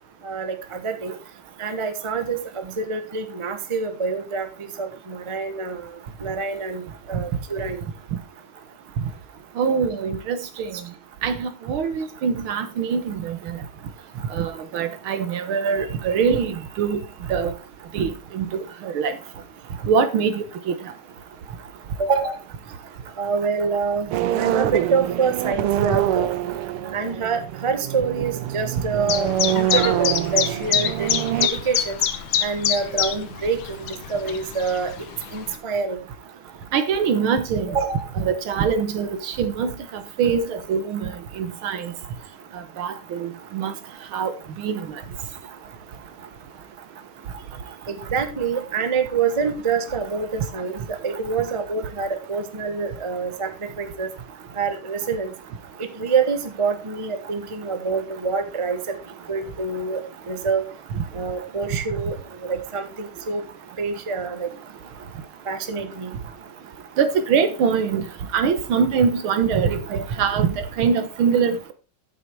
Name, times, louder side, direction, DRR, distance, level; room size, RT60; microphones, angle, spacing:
voice 1, 0.2-1.1 1.6-7.8 10.7-10.8 22.0-22.4 23.2-24.1 24.3-26.3 26.9-32.0 32.4-34.9 35.3-36.0 37.7-38.1 47.9-54.1 54.5-55.3 55.8-59.0 59.3-60.6 61.1-63.4 63.8-64.5 65.4-66.1, right 5 dB, 20° right, 0.9 m, -26 dB
voice 2, 9.6-10.7 11.2-13.4 14.3-17.0 17.3-17.5 17.9-19.1 19.9-20.8 25.9-26.0 36.7-37.7 38.2-39.7 40.2-41.1 41.4-41.9 42.8-43.7 44.1-44.3 44.6-44.8 67.0-68.1 68.3-71.7, right 6 dB, 75° right, 1.9 m, -23 dB
sound 1, 24.1-31.5, right 12 dB, 90° right, 1.6 m, -25 dB
Chirp tweet, 29.1-35.6, left 9 dB, 65° left, 1.6 m, -26 dB
9.3 x 7.8 x 4.6 m
omnidirectional pair, 2.4 m